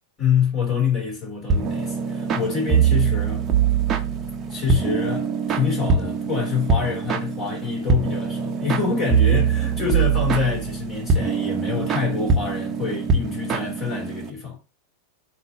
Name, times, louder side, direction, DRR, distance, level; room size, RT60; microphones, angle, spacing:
voice 1, 0.2-3.5 4.5-14.6, left 6 dB, 30° left, 3.2 m, -26 dB
sound 1, 1.5-14.3, right 6 dB, 25° right, 1.2 m, -23 dB
8.1 x 3.0 x 5.4 m
figure-of-eight pair, 90°, 0 cm